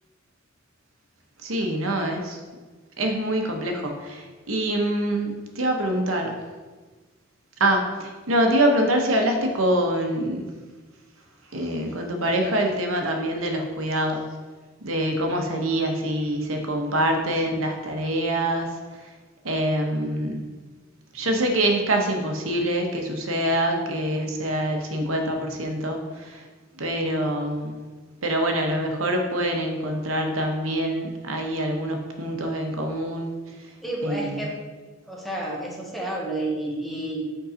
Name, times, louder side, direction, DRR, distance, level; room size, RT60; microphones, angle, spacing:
voice 1, 1.4-2.4 3.0-6.4 7.6-10.5 11.5-14.2 14.8-19.1 19.4-20.4 21.1-26.5 26.7-27.9 28.2-33.7 34.0-34.5, right 1 dB, 85° right, 3 dB, 0.9 m, -25 dB
voice 2, 33.8-34.6 35.0-37.2, right 1 dB, ahead, -2 dB, 1.1 m, -30 dB
5.4 x 3.8 x 5.0 m, 1.3 s
head